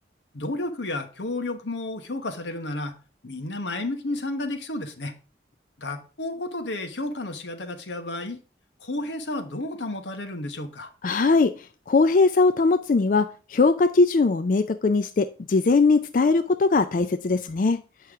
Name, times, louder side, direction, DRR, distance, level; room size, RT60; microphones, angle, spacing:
voice 1, 0.3-3.0 3.2-5.1 5.8-8.4 8.8-10.9, left 2 dB, 85° left, 1.2 m, -32 dB
voice 2, 11.0-17.8, left 3 dB, 45° left, 0.4 m, -20 dB
8.4 x 5.6 x 3.6 m
head